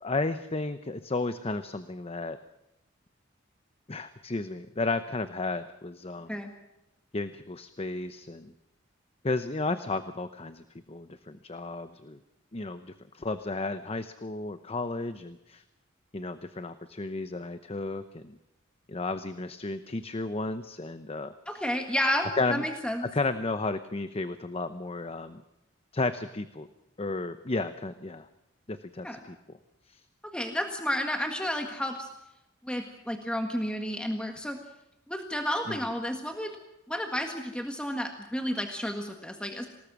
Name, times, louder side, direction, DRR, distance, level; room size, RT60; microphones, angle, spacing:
voice 1, 0.0-2.4 3.9-6.4 7.1-8.5 9.2-12.2 12.5-15.6 16.1-18.4 18.9-21.6 22.4-22.6 23.1-25.4 25.9-26.7 27.0-28.3 28.7-29.4 29.9-30.0 35.7-35.8, left 3 dB, 30° left, 11 dB, 0.8 m, -33 dB
voice 2, 21.5-23.0 29.0-29.2 30.3-32.1 32.6-34.6 35.1-36.6 36.9-39.7, equal, 5° left, 4 dB, 1.7 m, -31 dB
26.5 x 19.0 x 6.2 m, 0.90 s
head